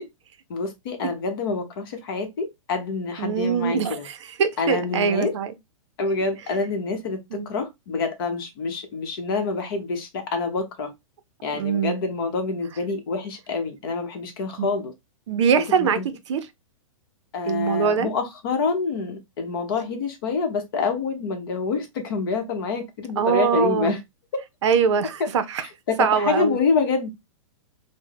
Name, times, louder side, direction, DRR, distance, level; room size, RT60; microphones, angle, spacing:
voice 1, 0.5-4.1 4.6-5.3 6.0-7.2 7.5-10.9 11.4-14.9 15.8-16.1 17.3-24.0 25.2-25.3 25.6-27.1, left 4 dB, 45° left, 0.8 m, -27 dB
voice 2, 3.2-5.5 7.3-7.5 11.5-12.0 15.3-16.0 16.3-16.4 17.5-18.1 23.2-23.9 24.6-25.7 26.0-26.6, right 7 dB, 60° right, 0.5 m, -22 dB
3.1 x 2.1 x 3.7 m
hypercardioid pair, 170°, 17 cm